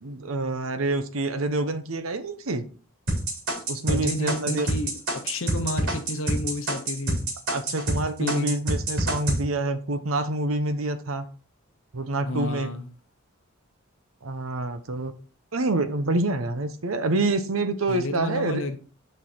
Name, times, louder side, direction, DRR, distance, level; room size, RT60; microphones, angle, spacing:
voice 1, 0.0-2.7 3.7-4.7 7.5-11.3 11.9-12.7 14.2-15.1 15.5-18.6, right 2 dB, 80° right, 0.9 m, -27 dB
sound 1, 3.1-8.0 8.3-9.4, right 1 dB, 65° right, 3.7 m, -26 dB
voice 2, 3.9-7.2 8.2-8.5 12.3-12.9 17.9-18.8, left 1 dB, 70° left, 0.9 m, -31 dB
6.4 x 5.5 x 4.3 m
head